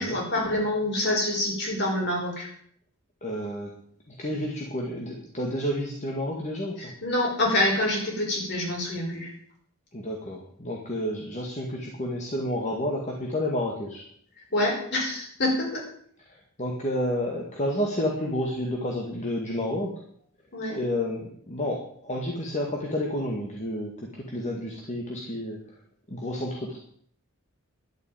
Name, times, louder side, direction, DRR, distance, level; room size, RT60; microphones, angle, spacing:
voice 1, 0.0-2.5 6.8-9.3 14.5-15.8 20.5-20.8, left 1 dB, 50° left, -1 dB, 5.6 m, -26 dB
voice 2, 3.2-3.7 4.2-6.9 9.9-14.0 16.6-19.9 20.7-21.2 21.5-23.9 24.3-25.6 26.1-26.8, left 1 dB, 30° left, 0 dB, 2.0 m, -30 dB
12.0 x 8.2 x 9.2 m, 0.63 s
head